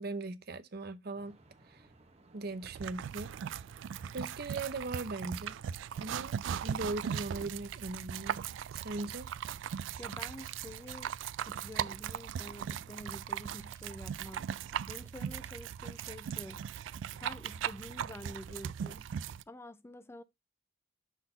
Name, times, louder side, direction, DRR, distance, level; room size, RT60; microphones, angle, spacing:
voice 1, 0.0-1.4 1.7-1.9 2.3-3.3 4.1-5.6 6.0-6.3 6.6-8.4 8.7-9.3, right 2 dB, 55° right, 0.8 m, -39 dB
sound 1, 1.1-6.7, right 2 dB, 35° right, 1.1 m, -62 dB
sound 2, 2.6-19.4, right 9 dB, 75° right, 0.3 m, -39 dB
voice 2, 10.0-11.1 11.4-14.5 14.9-16.6 17.2-19.1 19.5-20.2, left 1 dB, 15° left, 0.4 m, -48 dB
6.2 x 4.0 x 5.2 m
head